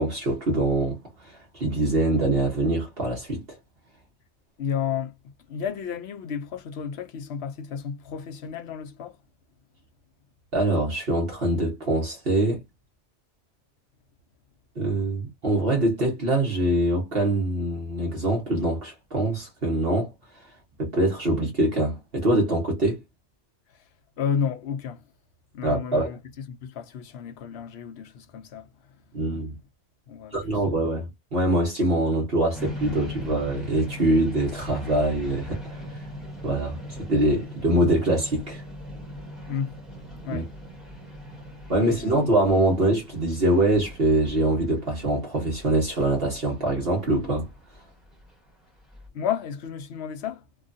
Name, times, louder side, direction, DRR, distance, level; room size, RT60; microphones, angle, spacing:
voice 1, 0.0-3.4 10.5-12.6 14.8-20.1 20.8-23.0 25.6-26.1 29.1-29.6 30.3-36.0 36.4-36.8 37.1-38.6 40.3-40.4 41.7-47.5, right 1 dB, 55° right, 1.3 m, -24 dB
voice 2, 4.6-5.1 5.5-9.2 24.2-25.0 25.5-26.2 26.5-28.7 30.1-30.4 39.5-39.8 40.2-40.5 41.7-42.3 49.1-50.4, left 7 dB, 70° left, 0.9 m, -31 dB
sound 1, 32.5-49.1, equal, ahead, 1.1 m, -40 dB
3.0 x 2.2 x 2.6 m
omnidirectional pair, 1.2 m